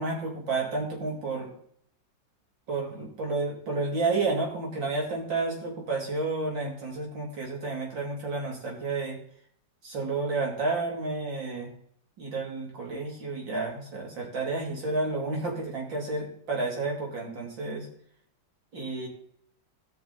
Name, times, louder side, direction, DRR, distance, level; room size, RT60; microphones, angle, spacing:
voice 1, 0.0-1.5 2.7-9.2 9.8-11.7 12.2-17.9 18.7-19.1, right 3 dB, 90° right, -1 dB, 3.7 m, -31 dB
18.0 x 6.0 x 4.1 m, 0.64 s
omnidirectional pair, 2.0 m